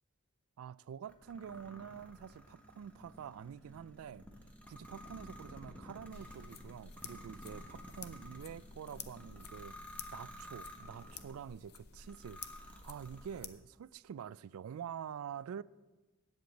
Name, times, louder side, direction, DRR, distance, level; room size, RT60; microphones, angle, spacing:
voice 1, 0.6-4.2 4.6-9.8 10.1-15.6, right 8 dB, 70° right, 0.3 m, -47 dB
sound 1, 1.1-11.4 12.0-13.6, equal, 5° left, 1.1 m, -53 dB
sound 2, 6.1-13.5, left 6 dB, 50° left, 0.7 m, -51 dB
8.7 x 7.8 x 7.9 m
head